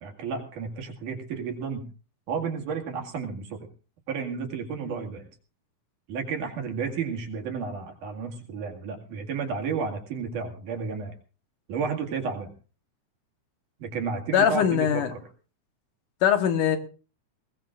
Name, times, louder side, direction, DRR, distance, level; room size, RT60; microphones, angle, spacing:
voice 1, 0.0-1.8 2.3-3.6 4.1-5.3 6.1-11.1 11.7-12.5 13.8-15.2, right 5 dB, 70° right, 3.7 m, -32 dB
voice 2, 14.3-15.1 16.2-16.8, left 9 dB, 75° left, 2.9 m, -22 dB
21.5 x 19.0 x 2.5 m
omnidirectional pair, 3.8 m